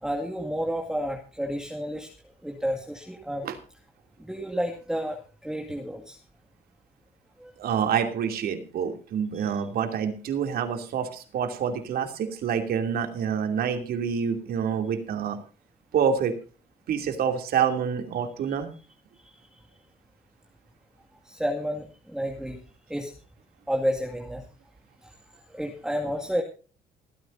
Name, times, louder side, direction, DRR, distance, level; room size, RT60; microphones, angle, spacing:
voice 1, 0.0-2.1 2.4-3.5 4.2-6.2 7.4-7.5 9.3-9.6 18.5-18.6 19.2-19.5 21.2-22.6 22.9-23.1 23.7-24.5 25.0-25.1 25.5-26.4, equal, 5° right, 1 dB, 2.1 m, -31 dB
voice 2, 7.6-15.4 15.9-16.3 16.9-18.7, right 7 dB, 65° right, 7 dB, 2.7 m, -27 dB
28.0 x 9.5 x 2.6 m, 0.35 s
cardioid pair, 110°, 17 cm